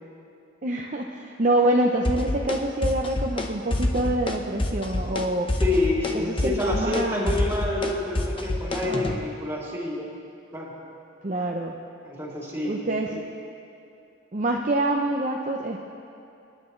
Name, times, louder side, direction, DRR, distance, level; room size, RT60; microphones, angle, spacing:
voice 1, 0.6-5.5 6.1-7.3 8.8-9.2 11.2-11.8 12.6-13.1 14.3-15.8, right 1 dB, 40° right, 0 dB, 0.7 m, -26 dB
sound 1, 2.0-2.6 2.8-3.5 3.7-4.3 4.6-5.2 5.5-9.2, left 1 dB, 25° left, 0.9 m, -26 dB
voice 2, 5.6-10.1 10.5-10.7 12.0-13.2, left 2 dB, 15° right, -5 dB, 3.0 m, -28 dB
27.5 x 11.0 x 3.2 m, 2.7 s
head